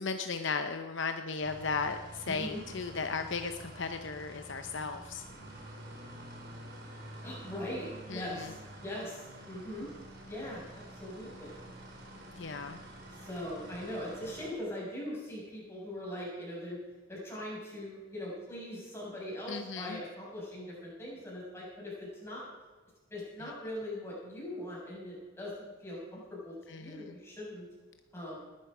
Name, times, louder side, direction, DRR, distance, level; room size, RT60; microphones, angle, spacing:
voice 1, 0.0-5.2 8.1-8.5 12.3-12.8 19.5-20.0 23.4-23.5 26.7-27.1, left 4 dB, 60° left, 7 dB, 0.8 m, -36 dB
sound 1, 1.4-14.5, right 1 dB, 50° right, 4.5 m, -48 dB
voice 2, 2.3-2.6 7.2-9.9 10.3-11.6 13.2-16.8 17.1-22.5 23.1-27.6 28.1-28.4, left 1 dB, 10° left, -5 dB, 6.7 m, -41 dB
20.0 x 12.0 x 5.0 m, 1.3 s
head